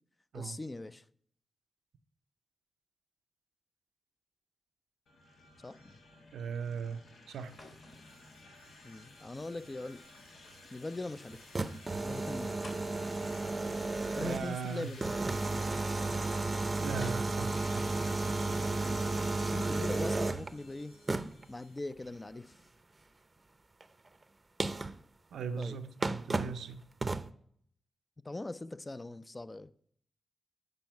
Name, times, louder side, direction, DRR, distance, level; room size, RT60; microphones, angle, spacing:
voice 1, 0.3-1.0 5.6-5.9 8.8-10.0 10.4-10.5 10.7-11.5 12.0-12.6 14.1-15.1 18.8-19.1 19.3-20.9 21.5-22.6 25.6-25.8 28.2-29.7, left 2 dB, 30° left, 0.5 m, -41 dB
sound 1, 5.1-21.8, left 2 dB, 80° left, 1.2 m, -53 dB
sound 2, 5.5-19.6, left 1 dB, 65° left, 2.7 m, -60 dB
voice 2, 6.3-7.6 14.2-15.0 16.8-17.9 25.3-27.2, right 6 dB, 85° right, 0.5 m, -39 dB
sound 3, 11.3-14.6 15.0-20.5 21.1-21.4 23.8-23.9 24.6-25.0 25.6-25.7 26.0-26.6 27.0-27.3, right 3 dB, 35° right, 0.6 m, -33 dB
8.9 x 5.4 x 4.5 m
cardioid pair, 50°, 0 cm